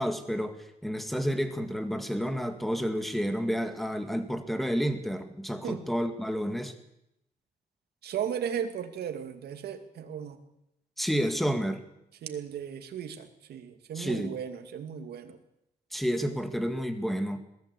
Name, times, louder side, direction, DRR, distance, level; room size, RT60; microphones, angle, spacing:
voice 1, 0.0-6.7 11.0-11.8 13.9-14.3 15.9-17.4, equal, ahead, 8 dB, 2.0 m, -30 dB
voice 2, 8.0-10.4 12.2-15.4, right 8 dB, 85° right, 7 dB, 2.4 m, -36 dB
22.0 x 15.0 x 8.4 m, 0.84 s
wide cardioid pair, 145°, 16 cm